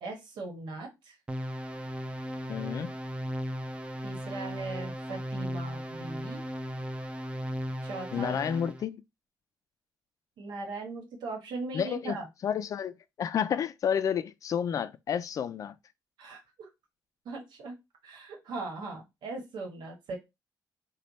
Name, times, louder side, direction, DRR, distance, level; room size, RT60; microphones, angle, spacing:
voice 1, 0.0-1.2 4.0-6.4 7.8-8.3 10.4-12.3 16.2-16.7 17.2-17.7 18.0-20.2, right 3 dB, 90° right, 1.2 m, -39 dB
sound 1, 1.3-8.8, equal, 15° right, 0.4 m, -36 dB
voice 2, 2.5-2.9 8.1-9.0 11.7-12.1 12.4-15.7, left 8 dB, 50° left, 0.3 m, -30 dB
3.2 x 2.2 x 4.0 m
cardioid pair, 125°, 7 cm